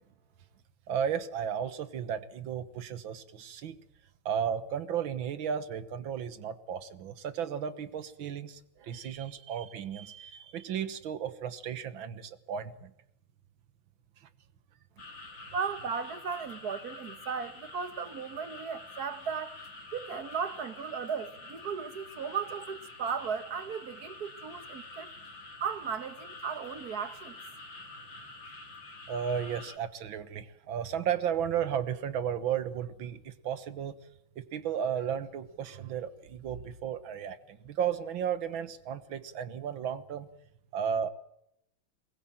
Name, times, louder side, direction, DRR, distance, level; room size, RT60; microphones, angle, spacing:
voice 1, 0.9-3.8 4.3-12.9 14.2-14.3 29.1-34.0 34.4-40.3 40.7-41.1, right 8 dB, 70° right, 2.0 m, -34 dB
sound 1, 15.0-29.8, left 2 dB, 60° left, 3.5 m, -47 dB
voice 2, 15.5-19.5 19.9-25.1 25.6-27.3, right 6 dB, 50° right, 1.8 m, -36 dB
22.0 x 20.0 x 9.0 m
omnidirectional pair, 2.3 m